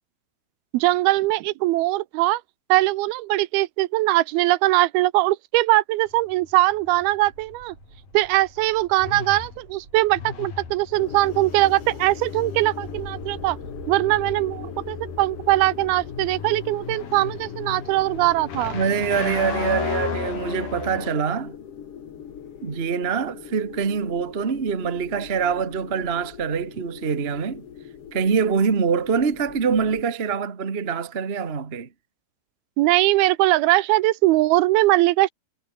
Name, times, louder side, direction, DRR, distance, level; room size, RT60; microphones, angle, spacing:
voice 1, 0.7-2.4 2.7-7.8 8.1-13.6 13.9-18.8 32.8-35.3, right 18 dB, 90° right, 2.8 m, -21 dB
sound 1, 6.1-21.1, left 7 dB, 70° left, 5.4 m, -35 dB
sound 2, 7.2-20.6, right 5 dB, 40° right, 4.6 m, -48 dB
sound 3, 11.0-30.0, left 8 dB, 50° left, 2.3 m, -41 dB
voice 2, 18.7-21.5 22.6-27.6 28.1-31.9, right 6 dB, 60° right, 0.6 m, -24 dB
omnidirectional pair, 4.3 m